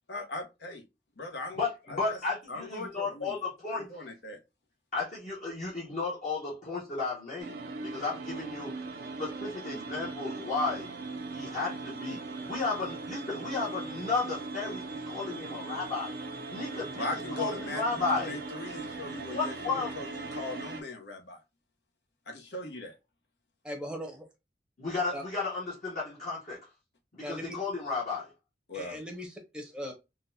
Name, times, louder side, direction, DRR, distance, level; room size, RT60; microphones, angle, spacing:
voice 1, 0.1-0.8 1.2-2.2 2.5-3.3 3.7-4.4 17.0-21.4 22.3-23.0 28.7-29.0, left 2 dB, 75° left, 0.9 m, -39 dB
voice 2, 1.6-4.0 4.9-7.5 7.8-10.9 11.3-16.1 16.5-18.4 19.3-19.9 24.8-26.6 27.1-28.3, left 3 dB, 45° left, 1.0 m, -33 dB
sound 1, 7.4-20.8, right 3 dB, 55° right, 0.5 m, -39 dB
voice 3, 23.6-24.3 25.1-25.2 27.2-27.5 28.7-29.9, equal, 5° right, 0.7 m, -39 dB
3.8 x 2.2 x 2.6 m
head